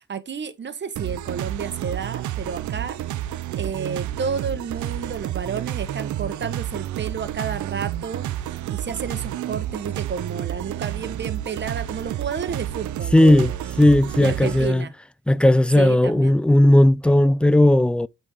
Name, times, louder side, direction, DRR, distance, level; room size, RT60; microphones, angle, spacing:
voice 1, 0.0-3.0 3.5-13.8 14.2-14.9 15.7-16.3, right 6 dB, 35° right, 1.2 m, -31 dB
sound 1, 1.0-14.7, right 12 dB, 75° right, 0.7 m, -30 dB
voice 2, 13.1-13.5 13.8-14.9 15.3-18.1, left 1 dB, 5° left, 0.3 m, -16 dB
7.8 x 4.4 x 3.6 m
cardioid pair, 90°, 30 cm